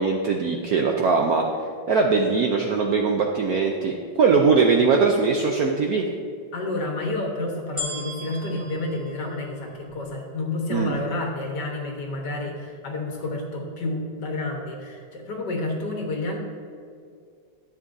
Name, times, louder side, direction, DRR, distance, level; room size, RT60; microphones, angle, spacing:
voice 1, 0.0-1.4 1.9-6.1 10.7-10.9, right 4 dB, 70° right, 1 dB, 0.9 m, -21 dB
voice 2, 6.5-16.4, left 2 dB, 60° left, 0 dB, 1.8 m, -30 dB
sound 1, 7.8-10.2 10.8-10.9, left 1 dB, 10° right, 1.7 m, -37 dB
12.0 x 8.4 x 2.6 m, 2.3 s
omnidirectional pair, 2.2 m